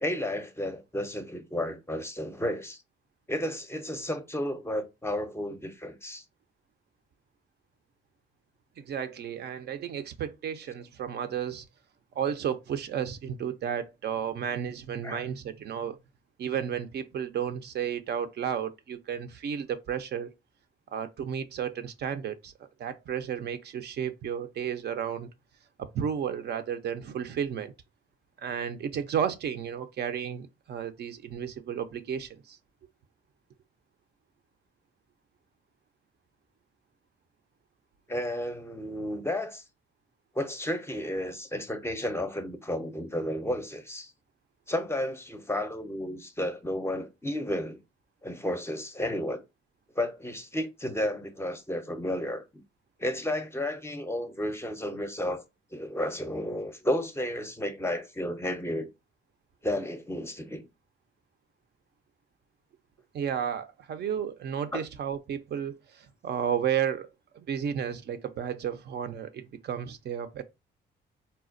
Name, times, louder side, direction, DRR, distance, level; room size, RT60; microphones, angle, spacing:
voice 1, 0.0-2.8 3.3-6.2 15.0-15.3 38.1-39.6 40.3-44.1 44.7-47.8 48.2-49.4 50.0-52.6 53.0-55.4 55.7-58.9 59.6-60.7 64.7-64.8, left 1 dB, 10° left, 0.5 m, -32 dB
voice 2, 8.8-11.6 12.2-16.0 16.4-20.3 20.9-25.3 25.8-27.7 28.4-32.6 63.1-67.1 67.3-70.4, right 8 dB, 55° right, 0.5 m, -33 dB
4.1 x 2.2 x 2.5 m
cardioid pair, 90°, 20 cm